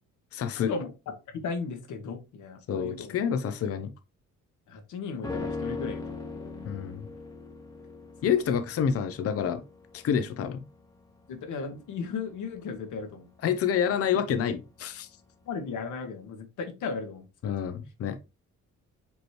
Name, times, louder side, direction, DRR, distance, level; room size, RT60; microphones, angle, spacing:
voice 1, 0.3-0.7 2.7-3.9 6.6-7.0 8.2-9.6 9.9-10.6 13.4-15.1 17.4-18.2, left 8 dB, 50° left, 0.6 m, -28 dB
voice 2, 1.3-3.1 4.7-6.7 8.2-8.3 11.3-13.3 15.4-17.7, left 4 dB, 80° left, 1.3 m, -36 dB
sound 1, 5.2-14.6 14.9-15.0, left 3 dB, 10° left, 1.1 m, -40 dB
5.2 x 3.0 x 3.1 m
cardioid pair, 90°, 30 cm